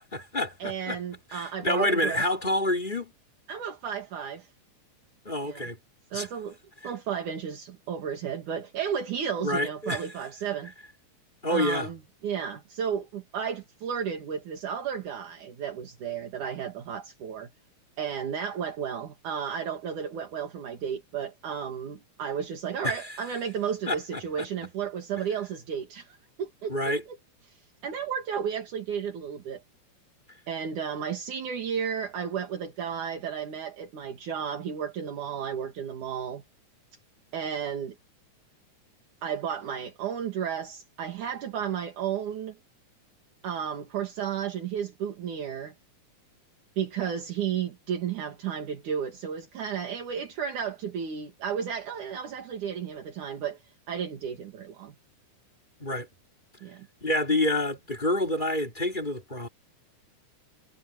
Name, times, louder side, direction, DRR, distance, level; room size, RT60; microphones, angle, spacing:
voice 1, 0.0-1.0 1.3-3.1 5.2-5.8 6.1-6.3 6.8-6.9 9.4-10.1 11.4-11.9 22.8-22.9 23.9-24.2 26.7-27.0 55.8-56.1 57.0-59.5, left 1 dB, 15° left, 2.9 m, -28 dB
voice 2, 0.6-2.2 3.5-4.5 5.4-5.7 6.1-6.6 6.8-10.7 11.5-12.0 12.2-17.5 18.0-26.9 27.5-29.6 30.5-36.4 37.3-38.0 39.2-42.6 43.4-45.7 46.8-53.6 53.9-55.0 56.6-56.9, right 8 dB, 65° right, 3.6 m, -33 dB
omnidirectional pair, 3.8 m